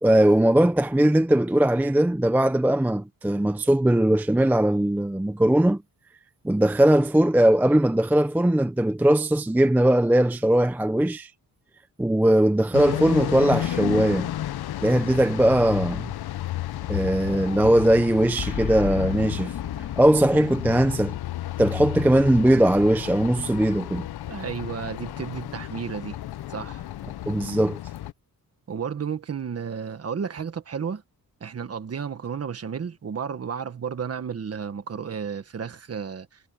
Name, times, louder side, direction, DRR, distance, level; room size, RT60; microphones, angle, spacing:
voice 1, 0.0-5.8 6.4-11.3 12.0-14.3 14.8-16.1 16.9-19.5 20.0-21.2 21.6-24.1 27.3-27.8, right 1 dB, 5° right, 0.5 m, -20 dB
sound 1, 12.7-28.1, left 13 dB, 90° left, 0.7 m, -32 dB
Boom, 18.4-22.8, left 8 dB, 65° left, 2.3 m, -36 dB
voice 2, 24.3-26.2 26.5-26.8 28.7-31.0 31.4-36.4, right 7 dB, 40° right, 1.5 m, -32 dB
wide cardioid pair, 175°, 37 cm